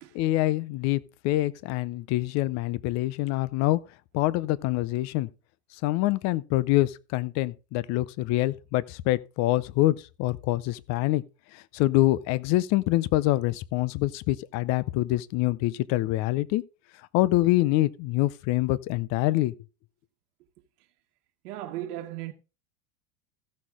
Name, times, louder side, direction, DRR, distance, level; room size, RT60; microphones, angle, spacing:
voice 1, 0.1-3.8 4.1-5.3 5.8-11.2 11.5-16.6 17.1-19.5, left 17 dB, 35° left, 0.5 m, -25 dB
voice 2, 21.4-22.3, right 13 dB, 70° right, 1.4 m, -36 dB
15.0 x 6.4 x 3.7 m
supercardioid pair, 135°, 47 cm